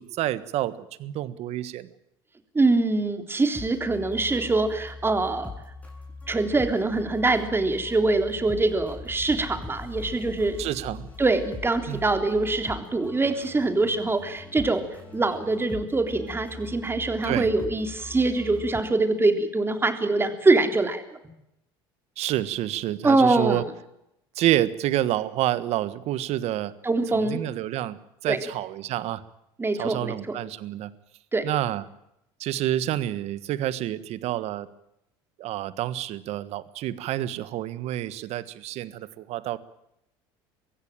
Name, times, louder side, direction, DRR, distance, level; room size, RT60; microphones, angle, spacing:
voice 1, 0.0-1.9 10.6-11.1 11.9-12.1 17.2-17.5 22.2-23.6 24.3-26.7 27.1-29.2 29.8-30.9 31.4-31.8 32.4-34.7 35.4-39.6, right 13 dB, 60° right, 15 dB, 1.4 m, -28 dB
voice 2, 2.6-5.5 6.3-10.6 11.2-14.9 15.1-21.0 23.0-23.6 26.8-27.4 28.3-28.4 29.6-30.4 31.3-31.5, right 3 dB, 20° right, 7 dB, 3.5 m, -24 dB
sound 1, 3.5-18.8, left 3 dB, 10° left, 6.8 m, -41 dB
23.5 x 16.0 x 8.9 m, 0.83 s
supercardioid pair, 85°, 12 cm